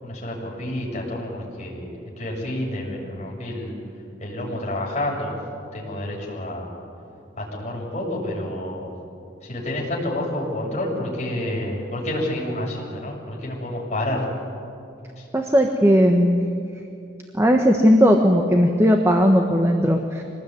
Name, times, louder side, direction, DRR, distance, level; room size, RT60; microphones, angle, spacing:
voice 1, 0.0-3.7 4.2-5.3 5.7-6.7 7.4-8.9 9.4-14.3 15.2-15.3, left 1 dB, 35° left, -3 dB, 7.0 m, -29 dB
voice 2, 15.3-16.4 17.4-20.2, equal, 15° right, 3 dB, 1.3 m, -17 dB
25.0 x 19.5 x 9.5 m, 2.7 s
head